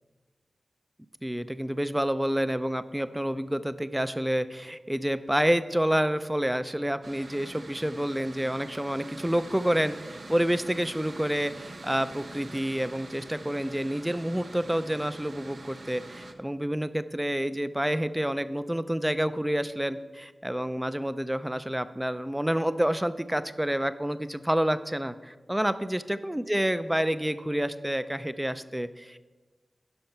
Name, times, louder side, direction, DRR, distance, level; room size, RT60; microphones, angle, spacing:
voice 1, 1.2-9.9 10.3-29.3, equal, 10° right, 13 dB, 0.5 m, -28 dB
Mechanical fan, 7.0-16.3, right 2 dB, 65° right, 0.7 m, -44 dB
11.0 x 5.7 x 4.4 m, 1.3 s
cardioid pair, 45°, 0 cm